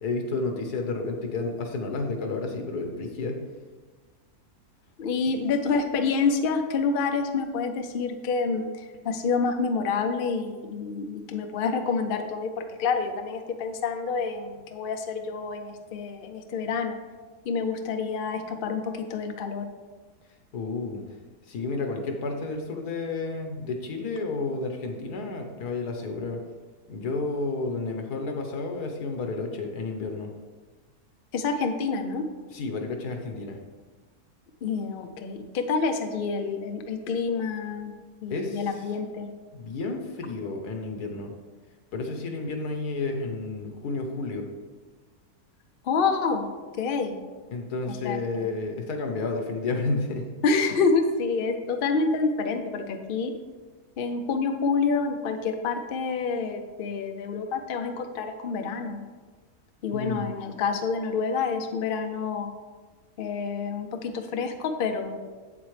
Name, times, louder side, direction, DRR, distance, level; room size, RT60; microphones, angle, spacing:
voice 1, 0.0-3.4 20.5-21.0 21.5-26.4 26.9-30.3 32.5-33.6 38.3-38.6 39.5-41.3 41.9-44.5 47.5-50.3 59.9-60.3, left 3 dB, 85° left, 4 dB, 1.6 m, -31 dB
voice 2, 5.0-17.0 17.4-19.7 31.3-32.3 34.6-37.9 38.2-39.3 45.8-46.5 46.8-47.2 47.9-48.2 50.4-53.3 54.0-59.0 59.8-62.5 63.2-65.2, left 4 dB, 50° left, 6 dB, 0.6 m, -28 dB
7.9 x 7.9 x 3.2 m, 1.4 s
omnidirectional pair, 1.6 m